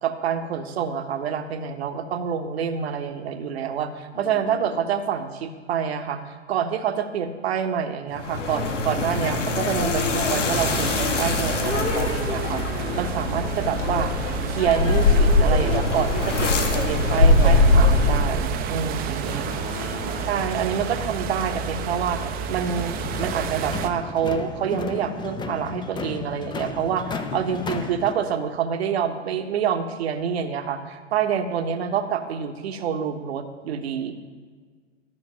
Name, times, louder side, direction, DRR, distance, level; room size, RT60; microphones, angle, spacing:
voice 1, 0.0-14.1 14.5-19.3 20.3-34.1, right 7 dB, 60° right, 8 dB, 1.2 m, -27 dB
voice 2, 4.1-4.8 19.2-20.4 27.3-27.6, left 7 dB, 50° left, 7 dB, 1.3 m, -38 dB
sound 1, 8.1-18.5, left 2 dB, 75° left, 1.7 m, -22 dB
sound 2, 10.5-23.9, right 5 dB, 25° right, 0.8 m, -30 dB
sound 3, 22.7-28.1, left 4 dB, 10° left, 0.8 m, -34 dB
13.0 x 6.4 x 7.5 m, 1.5 s
figure-of-eight pair, 105°, 37 cm